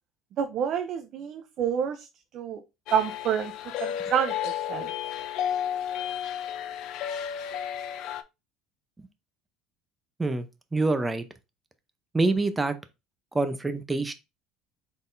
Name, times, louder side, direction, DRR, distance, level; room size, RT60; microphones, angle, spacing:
voice 1, 0.4-2.1 2.3-2.6 2.9-3.5 3.8-4.9, right 8 dB, 55° right, 0.5 m, -28 dB
sound 1, 2.9-8.2, left 9 dB, 65° left, 0.5 m, -32 dB
voice 2, 10.2-11.2 12.1-12.8 13.3-14.1, right 3 dB, 15° right, 0.6 m, -26 dB
4.0 x 3.7 x 2.6 m
supercardioid pair, 105°, 0 cm